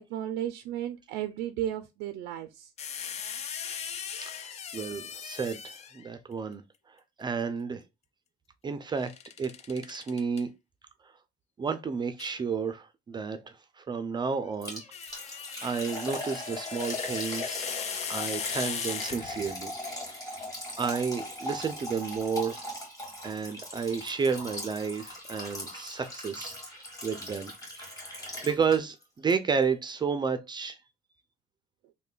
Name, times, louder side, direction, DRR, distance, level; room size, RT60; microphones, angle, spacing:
voice 1, 0.0-2.7, right 11 dB, 90° right, 0.4 m, -34 dB
sound 1, 2.8-6.1 9.0-10.4 12.2-12.4 14.5-19.6, left 7 dB, 40° left, 0.4 m, -38 dB
voice 2, 4.1-6.6 7.2-7.8 8.6-9.1 9.4-10.5 11.6-14.8 15.1-17.7 18.1-19.7 20.2-20.4 20.8-22.6 23.2-30.8, right 5 dB, 25° right, 0.4 m, -32 dB
Liquid, 14.6-29.0 29.3-29.4 29.9-30.0, left 1 dB, 20° left, 1.9 m, -39 dB
3.2 x 2.2 x 3.6 m
cardioid pair, 110°, 17 cm